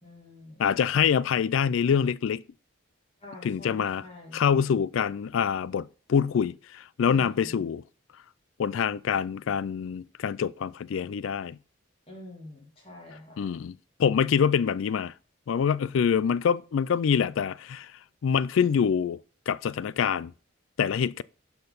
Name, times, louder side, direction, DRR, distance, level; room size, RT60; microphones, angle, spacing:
voice 1, 0.0-0.8 3.2-4.4 7.0-7.6 12.1-13.4, left 2 dB, 30° left, 2.8 m, -47 dB
voice 2, 0.6-2.4 3.4-4.0 4.3-7.8 8.6-11.6 13.4-13.7 14.0-15.1 15.5-17.9 18.2-19.2 19.5-20.3 20.8-21.2, left 7 dB, 80° left, 0.3 m, -25 dB
12.0 x 4.5 x 4.0 m
head